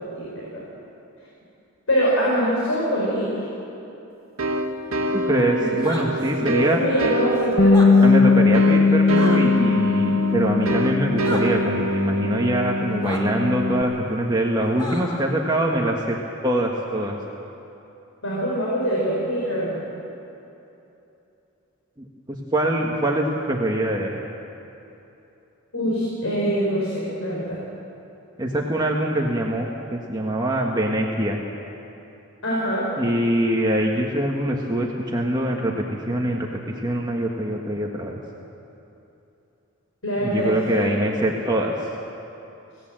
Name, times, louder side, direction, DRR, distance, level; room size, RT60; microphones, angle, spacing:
voice 1, 0.2-0.6 1.9-3.3 5.6-5.7 6.3-8.3 18.2-19.8 25.7-27.6 32.4-32.8 40.0-40.9, equal, 80° left, -5 dB, 5.1 m, -24 dB
sound 1, 4.4-14.9, right 1 dB, 75° right, 2.0 m, -28 dB
voice 2, 5.1-6.8 8.0-16.2 16.4-17.2 22.0-24.2 28.4-31.4 33.0-38.2 40.2-41.7, right 1 dB, 20° right, -1 dB, 1.5 m, -24 dB
sound 2, 5.8-6.1 7.6-7.9 9.2-9.4 11.2-11.4 13.0-13.2 14.8-15.2, left 1 dB, 20° left, 3.0 m, -32 dB
Bass guitar, 7.6-13.8, left 4 dB, 40° left, 1.0 m, -19 dB
25.5 x 18.0 x 7.7 m, 2.9 s
head